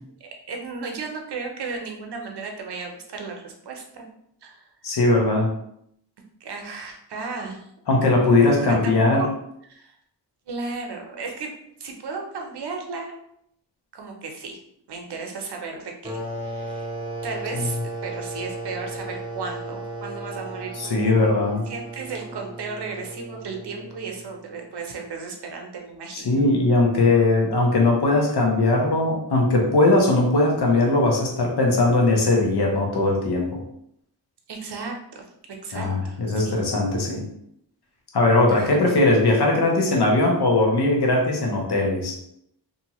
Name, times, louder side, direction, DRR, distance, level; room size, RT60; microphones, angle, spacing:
voice 1, 0.2-4.0 4.4-4.7 6.4-7.7 8.4-9.3 9.6-10.0 10.5-11.5 11.8-13.1 13.9-14.6 14.9-16.9 17.2-21.1 21.7-26.3 34.5-35.3 35.6-36.6 38.5-38.7, right 4 dB, 65° right, 2 dB, 0.7 m, -35 dB
voice 2, 4.8-5.5 7.9-9.2 17.5-17.7 20.8-21.6 26.1-33.5 35.7-37.2 38.1-42.1, left 2 dB, 60° left, 0 dB, 0.9 m, -20 dB
sound 1, 16.0-24.4, right 2 dB, 10° right, 0.8 m, -35 dB
2.6 x 2.4 x 2.9 m, 0.73 s
cardioid pair, 50°, 44 cm